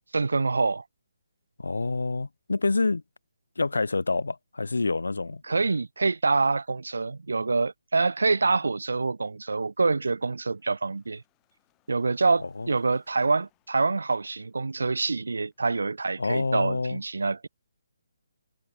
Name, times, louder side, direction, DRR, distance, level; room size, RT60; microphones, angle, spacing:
voice 1, 0.1-0.8 5.5-11.2 11.9-17.5, right 3 dB, 70° right, 0.5 m, -26 dB
voice 2, 1.6-3.0 3.6-5.4 12.4-12.7 16.2-17.0, left 3 dB, 70° left, 0.6 m, -27 dB
sound 1, 9.9-15.6, left 22 dB, 20° left, 7.1 m, -74 dB
figure-of-eight pair, 145°, 0 cm